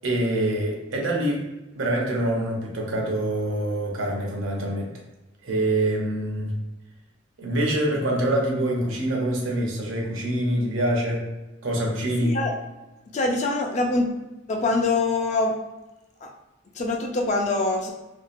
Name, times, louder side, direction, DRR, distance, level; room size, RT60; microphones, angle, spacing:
voice 1, 0.0-1.4 1.7-4.9 5.4-6.5 7.4-11.3 11.6-12.4, right 1 dB, 75° right, 0 dB, 0.7 m, -25 dB
voice 2, 12.2-12.5 13.1-14.1 14.5-15.5 16.2-16.3 16.8-17.9, left 2 dB, 35° left, 2 dB, 0.4 m, -24 dB
2.7 x 2.2 x 2.5 m, 1.0 s
head